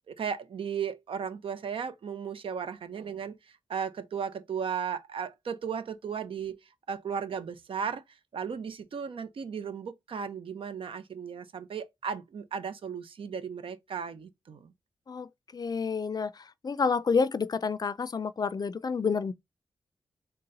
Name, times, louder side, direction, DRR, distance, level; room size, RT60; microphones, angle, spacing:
voice 1, 0.1-3.4 3.7-6.6 6.9-8.0 8.3-14.7, right 7 dB, 75° right, 0.7 m, -35 dB
voice 2, 15.5-16.3 16.6-19.3, left 5 dB, 45° left, 0.4 m, -28 dB
3.9 x 2.2 x 3.9 m
cardioid pair, 60°, 9 cm